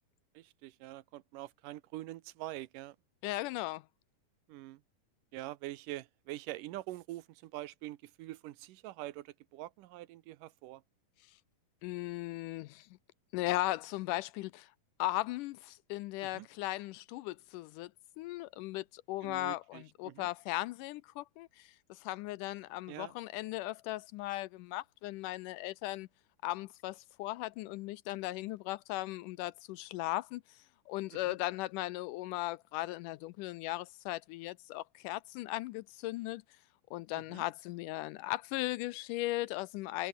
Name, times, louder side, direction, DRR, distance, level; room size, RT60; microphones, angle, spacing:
voice 1, 0.3-3.0 4.5-4.8 5.3-10.8 16.2-16.5 19.2-20.3 22.9-23.1 31.1-31.4 37.2-37.4, right 16 dB, 75° right, 2.3 m, -45 dB
voice 2, 3.2-3.8 11.8-12.9 13.3-14.7 15.0-17.9 18.2-26.1 26.4-30.6 30.9-36.4 36.9-40.1, left 18 dB, 80° left, 2.0 m, -37 dB
omnidirectional pair, 3.9 m